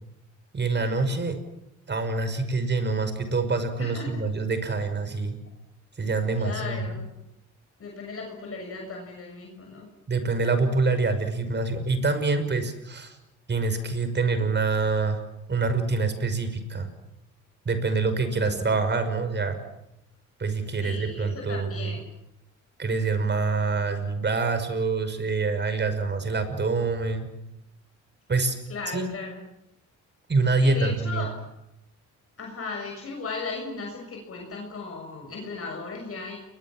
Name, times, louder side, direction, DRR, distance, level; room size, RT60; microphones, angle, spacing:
voice 1, 0.5-1.4 1.9-5.4 6.0-6.8 10.1-13.2 13.5-15.2 15.5-16.9 17.6-19.6 20.4-21.9 22.8-27.3 28.3-28.6 28.9-29.0 30.3-31.3, right 3 dB, 35° right, 9 dB, 5.9 m, -26 dB
voice 2, 3.8-4.1 6.4-7.1 7.8-9.9 18.3-18.7 20.8-22.0 28.7-29.4 30.6-31.3 32.4-36.4, left 4 dB, 50° left, 1 dB, 6.7 m, -36 dB
29.5 x 22.0 x 7.6 m, 0.86 s
cardioid pair, 90°, 30 cm